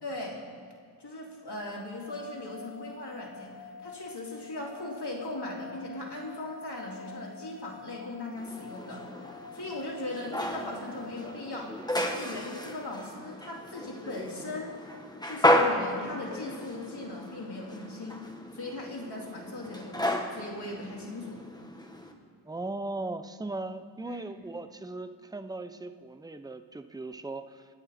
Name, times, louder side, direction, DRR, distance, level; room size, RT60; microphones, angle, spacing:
voice 1, 0.0-0.4 1.0-9.0 9.5-14.8 15.2-18.2 18.5-21.4 24.0-24.5, left 2 dB, 60° left, -3 dB, 3.6 m, -39 dB
sound 1, 1.7-11.8, left 5 dB, 35° left, 1.9 m, -48 dB
sound 2, 8.4-22.1, left 1 dB, 10° left, 1.5 m, -33 dB
voice 2, 22.5-27.7, right 2 dB, 10° right, 9 dB, 0.7 m, -38 dB
28.0 x 9.7 x 4.3 m, 2.3 s
wide cardioid pair, 90°, 45 cm